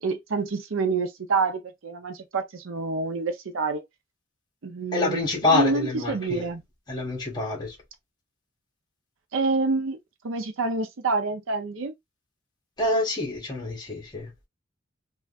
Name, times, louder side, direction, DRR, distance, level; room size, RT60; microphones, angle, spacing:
voice 1, 0.0-3.8 4.6-5.2 5.5-6.6 9.3-10.0 10.2-11.9, right 4 dB, 80° right, 0.6 m, -27 dB
voice 2, 4.9-6.5 6.9-7.8 12.8-14.3, left 2 dB, 20° left, 1.0 m, -26 dB
3.4 x 2.4 x 2.4 m
head